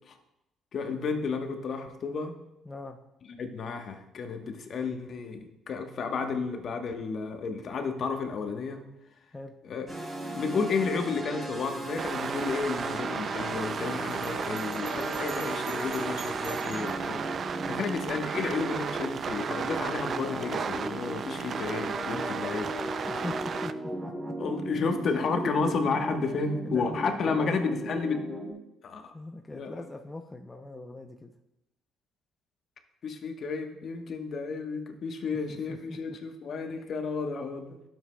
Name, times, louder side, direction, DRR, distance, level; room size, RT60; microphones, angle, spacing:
voice 1, 0.7-2.3 3.4-8.8 9.6-9.9 10.3-17.3 17.7-22.7 24.4-28.2 28.8-29.0 29.5-29.8 33.0-37.8, left 4 dB, 55° left, 5 dB, 1.1 m, -32 dB
voice 2, 2.7-3.0 9.3-9.5 17.6-17.8 23.1-23.7 24.0-24.3 25.1-25.7 26.6-27.8 29.1-31.3 35.7-36.2, left 2 dB, 15° left, 4 dB, 0.6 m, -41 dB
sound 1, 9.9-28.5, right 1 dB, 20° right, 3.4 m, -37 dB
sound 2, 12.0-23.7, right 6 dB, 50° right, 0.4 m, -34 dB
Bell, 14.1-17.1, right 4 dB, 85° right, 2.3 m, -48 dB
12.0 x 7.5 x 2.3 m, 0.89 s
cardioid pair, 80°, 0 cm